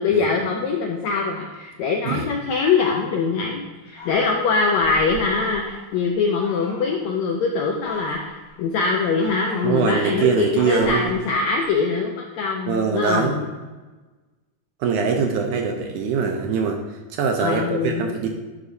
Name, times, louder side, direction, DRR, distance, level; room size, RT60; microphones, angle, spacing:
voice 1, 0.0-8.2 8.6-13.3 17.4-18.0, left 4 dB, 85° left, 1 dB, 1.6 m, -23 dB
Fowl, 3.8-5.9 6.4-7.0 7.6-8.5 9.0-11.8, left 2 dB, 50° left, 1.7 m, -39 dB
voice 2, 9.6-11.1 12.7-13.4 14.8-16.8 17.1-18.3, right 5 dB, 80° right, 3 dB, 1.9 m, -22 dB
11.0 x 5.0 x 2.7 m, 1.2 s
omnidirectional pair, 3.9 m